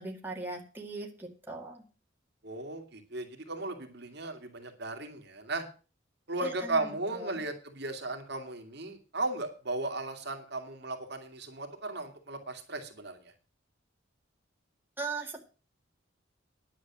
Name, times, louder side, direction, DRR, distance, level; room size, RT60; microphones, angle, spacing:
voice 1, 0.0-1.8 6.4-7.4 15.0-15.4, right 3 dB, 10° right, 0 dB, 2.0 m, -39 dB
voice 2, 2.4-5.6 6.3-13.3, right 2 dB, 60° right, 4 dB, 2.3 m, -36 dB
10.5 x 7.3 x 7.4 m, 0.36 s
head